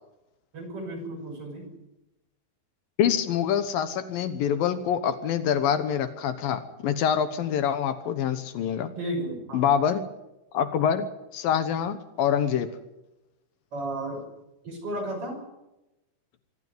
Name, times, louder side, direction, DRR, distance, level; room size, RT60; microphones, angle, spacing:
voice 1, 0.5-1.7 9.0-9.7 13.7-14.2 14.6-15.4, right 1 dB, 40° right, 2 dB, 6.9 m, -33 dB
voice 2, 3.0-8.9 9.5-10.0 10.5-11.1 11.3-12.7, left 8 dB, 75° left, 11 dB, 2.8 m, -25 dB
24.5 x 13.0 x 9.5 m, 0.96 s
omnidirectional pair, 4.3 m